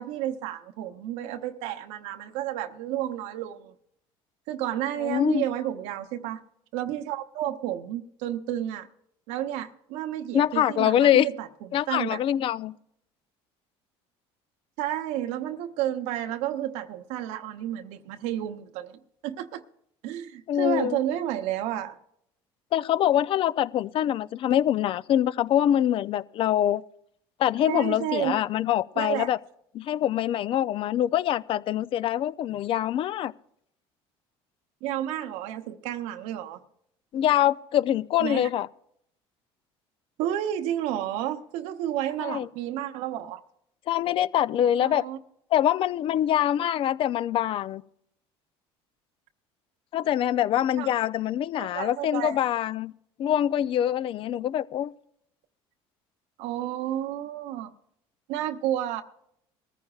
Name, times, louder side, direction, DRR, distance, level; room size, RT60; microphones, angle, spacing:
voice 1, 0.0-3.7 4.5-6.4 6.7-8.9 9.3-11.5 11.9-12.2 14.8-19.6 20.0-22.0 27.7-28.4 29.0-29.3 34.8-36.6 38.2-38.5 40.2-43.4 44.8-45.2 50.8-50.9 51.6-52.4 56.4-57.7 58.3-59.0, right 12 dB, 80° right, 0.8 m, -31 dB
voice 2, 5.0-5.4 10.3-11.3 11.7-12.7 20.5-21.0 22.7-26.8 27.4-29.4 29.7-33.3 37.1-38.7 42.2-42.5 43.9-45.1 45.5-47.8 49.9-52.9 53.2-54.9, left 11 dB, 50° left, 0.5 m, -24 dB
21.0 x 14.0 x 2.4 m
supercardioid pair, 105°, 11 cm